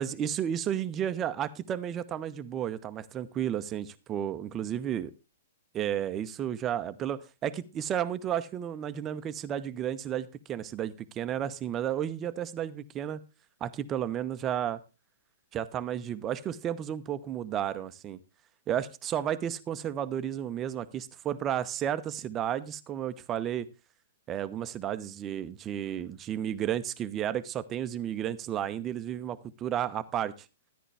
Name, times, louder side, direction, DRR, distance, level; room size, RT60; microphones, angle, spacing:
voice 1, 0.0-5.1 5.7-13.2 13.6-14.8 15.5-18.2 18.7-23.7 24.3-30.3, right 10 dB, 25° right, 0.9 m, -32 dB
13.5 x 10.0 x 3.4 m
figure-of-eight pair, 115°, 0 cm